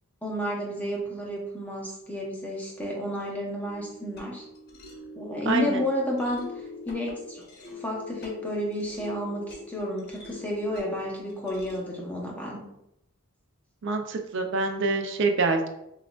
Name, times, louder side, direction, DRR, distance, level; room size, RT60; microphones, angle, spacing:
voice 1, 0.2-4.4 5.1-6.4 6.8-12.6, equal, 5° left, -3 dB, 0.8 m, -31 dB
sound 1, 3.6-12.1, left 2 dB, 45° left, 0.8 m, -44 dB
voice 2, 5.4-5.8 13.8-15.7, right 3 dB, 55° right, 5 dB, 0.5 m, -26 dB
5.7 x 2.4 x 2.3 m, 0.81 s
head